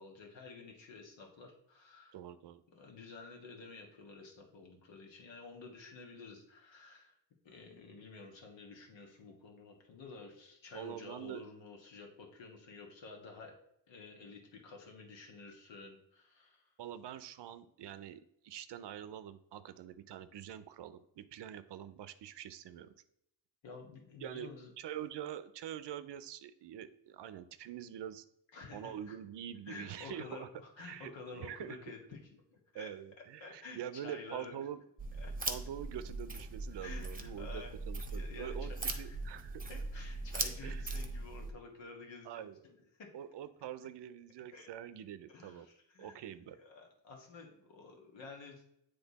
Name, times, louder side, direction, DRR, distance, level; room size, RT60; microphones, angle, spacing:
voice 1, 0.0-2.2 2.7-7.2 7.4-13.5 13.9-16.7 23.6-24.7 28.5-29.2 29.7-32.2 32.5-32.9 33.4-34.6 35.2-35.3 36.8-37.8 38.1-39.2 39.7-43.1 44.5-44.7 45.3-46.2 46.6-48.6, left 4 dB, 85° left, 1 dB, 1.5 m, -51 dB
voice 2, 2.1-2.6 10.7-11.5 16.8-22.9 24.2-24.5 24.8-28.2 28.7-30.5 30.8-31.8 32.7-34.8 35.5-38.7 39.0-39.7 40.0-40.1 40.6-40.9 42.2-42.6 43.1-45.7 46.0-46.6, right 10 dB, 70° right, 13 dB, 0.6 m, -45 dB
sound 1, 35.0-41.5, right 3 dB, 20° right, 0.9 m, -40 dB
8.1 x 3.3 x 4.0 m, 0.77 s
cardioid pair, 90°, 44 cm